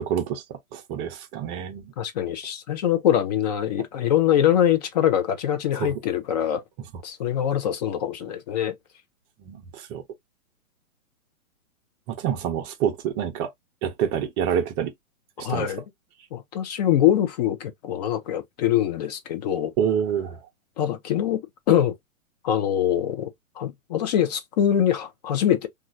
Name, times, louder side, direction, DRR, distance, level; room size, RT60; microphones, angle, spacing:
voice 1, 0.0-1.9 5.8-5.9 9.4-10.0 12.1-13.5 13.8-14.9 15.4-15.7 19.8-20.4, right 8 dB, 20° right, 0.6 m, -27 dB
voice 2, 2.0-6.6 7.0-8.7 15.4-15.8 16.3-19.7 20.8-21.4 21.7-21.9 22.4-23.3 23.6-25.7, left 10 dB, 30° left, 0.5 m, -23 dB
3.0 x 2.4 x 2.4 m
hypercardioid pair, 135°, 42 cm